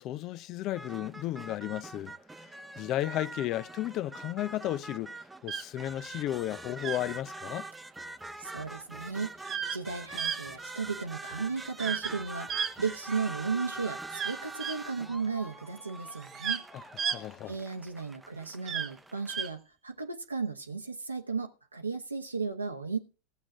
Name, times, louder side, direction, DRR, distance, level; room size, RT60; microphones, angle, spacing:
voice 1, 0.0-2.1 2.4-2.5 2.8-5.1 5.4-7.7 16.7-16.8 17.1-17.6, left 13 dB, 40° left, 0.6 m, -34 dB
sound 1, 0.7-19.5, right 2 dB, 10° right, 0.8 m, -44 dB
sound 2, 5.5-5.6 6.8-7.0 9.4-9.8 10.2-10.4 11.8-12.1 12.5-13.4 14.1-14.8 16.1-16.6 17.0-17.2 18.7-18.9 19.3-19.5, right 7 dB, 35° right, 1.3 m, -33 dB
voice 2, 8.4-16.6 17.5-23.0, right 5 dB, 90° right, 1.1 m, -35 dB
16.0 x 7.5 x 5.0 m
figure-of-eight pair, 85°, 0 cm